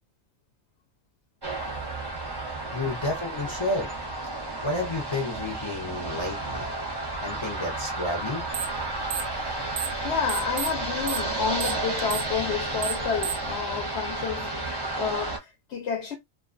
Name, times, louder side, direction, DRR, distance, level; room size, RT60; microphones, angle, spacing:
sound 1, 1.4-15.4, right 2 dB, 25° right, 0.6 m, -32 dB
voice 1, 2.4-3.9 4.6-6.8 7.2-8.5, left 2 dB, 30° left, 0.6 m, -31 dB
sound 2, 8.5-8.8 9.1-10.0 10.3-13.5, right 8 dB, 65° right, 0.7 m, -31 dB
voice 2, 10.0-14.5 14.9-16.2, left 6 dB, 75° left, 1.0 m, -30 dB
2.4 x 2.3 x 2.4 m
omnidirectional pair, 1.2 m